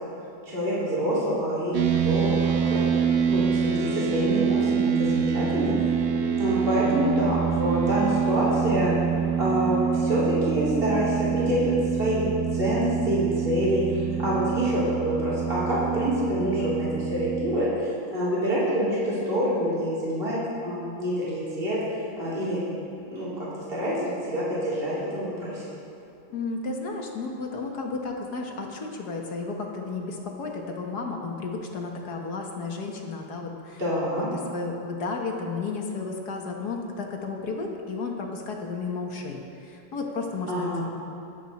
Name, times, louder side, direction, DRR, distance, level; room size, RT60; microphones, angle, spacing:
voice 1, 0.5-2.8 3.3-5.7 6.4-8.9 9.4-12.2 12.5-20.4 20.6-21.8 22.2-22.6 23.1-25.6 33.8-34.3 40.5-40.8, equal, 25° right, -9 dB, 3.7 m, -26 dB
sound 1, 1.7-17.6, right 7 dB, 55° right, 0.8 m, -26 dB
voice 2, 26.3-33.8 34.2-40.8, left 4 dB, 55° left, 1 dB, 1.7 m, -33 dB
24.5 x 8.2 x 4.2 m, 2.6 s
omnidirectional pair, 2.3 m